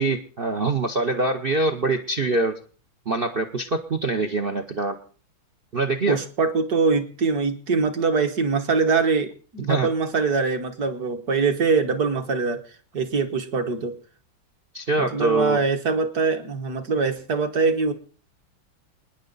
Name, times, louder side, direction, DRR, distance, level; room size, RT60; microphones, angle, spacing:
voice 1, 0.0-2.6 3.1-5.0 5.7-6.2 9.7-9.9 14.7-15.6, right 2 dB, 70° right, 8 dB, 0.5 m, -24 dB
voice 2, 6.1-12.6 12.9-14.0 15.0-17.9, right 4 dB, 50° right, 6 dB, 1.6 m, -23 dB
28.5 x 10.0 x 4.0 m, 0.40 s
omnidirectional pair, 2.3 m